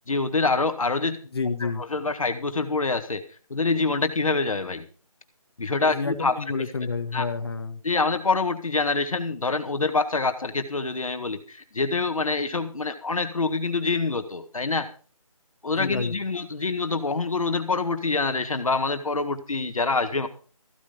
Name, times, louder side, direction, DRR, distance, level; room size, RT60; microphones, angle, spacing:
voice 1, 0.1-1.2 1.6-3.2 3.5-4.9 5.6-6.3 7.1-7.3 7.8-14.9 15.6-20.3, left 3 dB, 65° left, 8 dB, 1.7 m, -26 dB
voice 2, 1.3-1.8 5.9-7.8 15.7-16.1, left 4 dB, 45° left, 5 dB, 1.7 m, -29 dB
15.0 x 9.5 x 5.1 m, 0.40 s
figure-of-eight pair, 170°, 18 cm